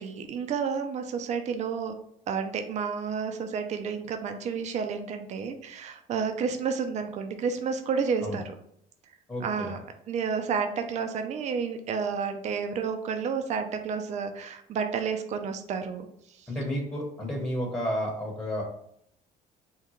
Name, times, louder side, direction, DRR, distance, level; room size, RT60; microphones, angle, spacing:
voice 1, 0.0-2.0 2.3-8.4 9.4-9.8 10.1-16.1 16.4-16.5, right 6 dB, 45° right, 6 dB, 0.4 m, -30 dB
voice 2, 9.3-9.7 16.5-18.6, equal, 15° left, -3 dB, 0.9 m, -31 dB
3.6 x 2.2 x 2.9 m, 0.71 s
cardioid pair, 110°, 17 cm